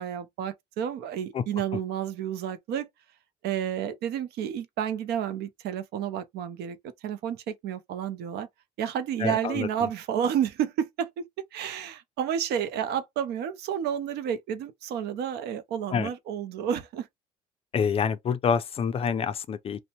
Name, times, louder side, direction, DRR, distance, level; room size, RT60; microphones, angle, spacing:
voice 1, 0.0-2.9 3.4-6.8 7.0-8.5 8.8-11.3 11.5-17.1, right 9 dB, 75° right, 0.5 m, -30 dB
voice 2, 9.2-9.7 15.9-16.1 17.7-19.9, left 6 dB, 35° left, 0.4 m, -27 dB
2.6 x 2.1 x 2.8 m
cardioid pair, 110°, 17 cm